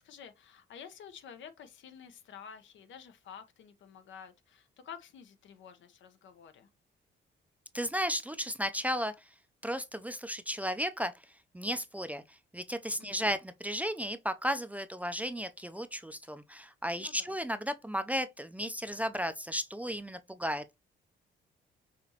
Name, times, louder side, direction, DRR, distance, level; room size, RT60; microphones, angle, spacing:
voice 1, 0.0-6.7 13.0-13.3 17.0-17.3, left 7 dB, 70° left, 0.8 m, -50 dB
voice 2, 7.7-9.1 9.6-11.1 11.5-20.8, equal, 5° right, 0.4 m, -34 dB
5.9 x 3.0 x 2.8 m
cardioid pair, 90°, 20 cm